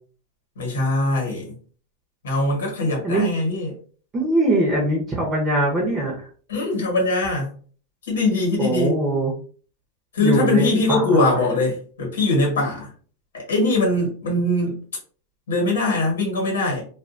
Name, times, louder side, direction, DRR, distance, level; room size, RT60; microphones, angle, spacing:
voice 1, 0.6-1.5 2.2-3.8 6.5-7.5 8.1-8.9 10.1-12.9 13.3-14.8 15.5-16.9, left 2 dB, 90° left, 0 dB, 1.4 m, -22 dB
voice 2, 4.1-6.3 8.6-9.3 10.2-11.4, right 1 dB, 20° right, -2 dB, 0.8 m, -22 dB
2.5 x 2.2 x 2.5 m, 0.43 s
supercardioid pair, 130°, 0 cm